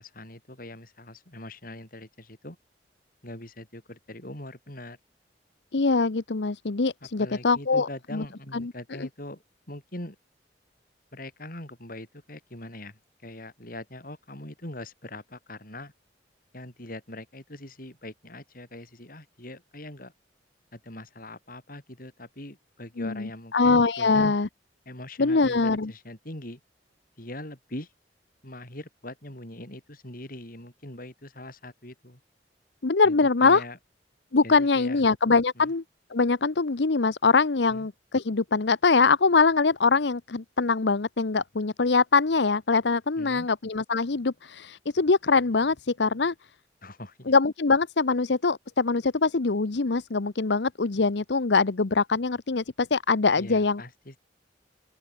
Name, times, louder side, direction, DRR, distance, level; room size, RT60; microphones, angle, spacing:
voice 1, 0.0-2.6 3.2-5.0 7.0-10.2 11.1-15.9 16.5-20.1 20.7-24.3 24.9-26.6 27.2-27.9 28.4-32.2 33.0-33.8 34.4-35.0 35.6-35.7 37.7-37.9 43.2-43.5 46.8-47.3 53.3-54.2, left 1 dB, 50° left, 8.0 m, -42 dB
voice 2, 5.7-8.2 8.5-8.7 9.0-9.1 23.0-24.5 25.2-25.9 32.8-33.6 34.3-35.8 36.1-46.3 47.3-53.8, left 4 dB, 75° left, 0.8 m, -23 dB
open air
head